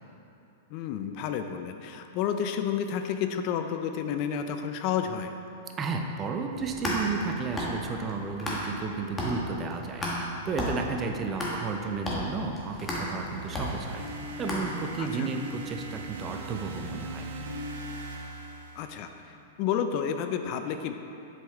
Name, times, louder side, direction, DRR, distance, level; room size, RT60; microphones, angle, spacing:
voice 1, 0.7-5.3 15.0-15.3 18.8-20.9, left 8 dB, 50° left, 7 dB, 0.4 m, -31 dB
voice 2, 5.8-10.1 10.4-14.0 14.4-17.3, right 4 dB, 25° right, 4 dB, 0.6 m, -33 dB
sound 1, 6.5-8.9 9.2-15.1, equal, 15° left, 1.5 m, -33 dB
sound 2, 13.1-19.3, right 1 dB, 80° right, 0.7 m, -40 dB
7.5 x 5.4 x 3.5 m, 2.9 s
hypercardioid pair, 120°, 0 cm